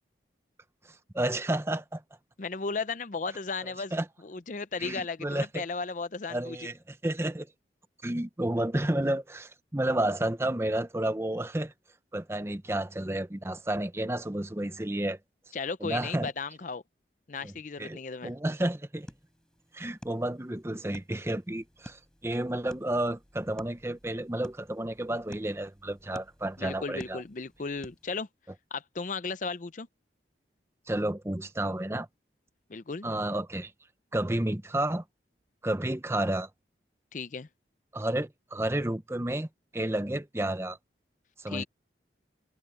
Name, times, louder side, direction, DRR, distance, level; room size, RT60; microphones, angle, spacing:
voice 1, 1.1-2.0 3.9-4.1 4.8-5.6 6.3-7.5 8.0-11.7 12.1-15.2 15.8-16.3 17.4-17.5 17.8-19.1 19.7-27.2 30.9-32.1 33.0-33.7 34.1-35.0 35.6-36.5 37.9-39.5 39.7-40.8 41.4-41.6, right 1 dB, 15° right, 0.7 m, -31 dB
voice 2, 2.4-3.9 4.2-6.6 15.5-16.8 17.3-18.3 26.6-28.3 28.7-29.9 32.7-33.1 37.1-37.5 41.5-41.6, left 4 dB, 45° left, 0.6 m, -35 dB
sound 1, 19.0-28.1, equal, 5° left, 6.5 m, -51 dB
head